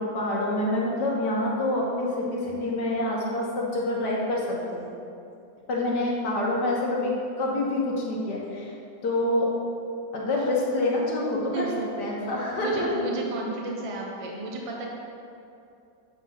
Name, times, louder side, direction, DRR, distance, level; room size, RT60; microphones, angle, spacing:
voice 1, 0.0-4.8 5.7-8.7 9.0-9.5 10.1-11.7 12.0-12.9, left 1 dB, 65° left, -3 dB, 1.8 m, -27 dB
voice 2, 11.5-11.8 12.6-14.9, right 2 dB, 30° right, -1 dB, 0.6 m, -33 dB
8.0 x 3.7 x 5.9 m, 2.7 s
omnidirectional pair, 1.9 m